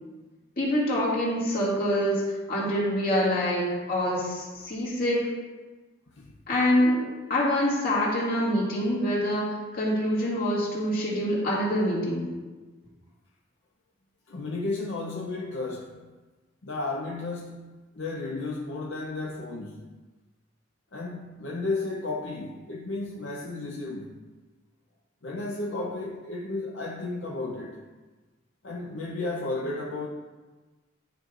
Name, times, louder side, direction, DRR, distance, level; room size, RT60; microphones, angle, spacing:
voice 1, 0.6-5.3 6.5-12.3, equal, 50° left, -6 dB, 2.2 m, -26 dB
voice 2, 14.3-16.1 16.6-19.9 20.9-24.2 25.2-27.8 28.6-30.1, left 2 dB, 75° left, -2 dB, 0.7 m, -33 dB
11.5 x 4.7 x 2.5 m, 1.3 s
head